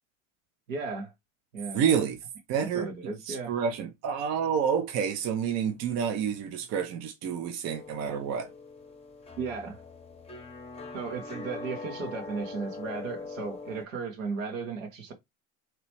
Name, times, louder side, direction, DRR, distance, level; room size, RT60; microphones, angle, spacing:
voice 1, 0.7-1.1 1.5-1.8 2.6-3.5 9.4-9.8 10.9-15.1, right 4 dB, 75° right, 1.3 m, -35 dB
voice 2, 1.7-2.2 2.5-2.9 3.3-8.5, right 7 dB, 40° right, 0.7 m, -28 dB
sound 1, 7.7-13.9, left 3 dB, 15° left, 0.9 m, -42 dB
3.0 x 3.0 x 3.0 m
hypercardioid pair, 80°, 40 cm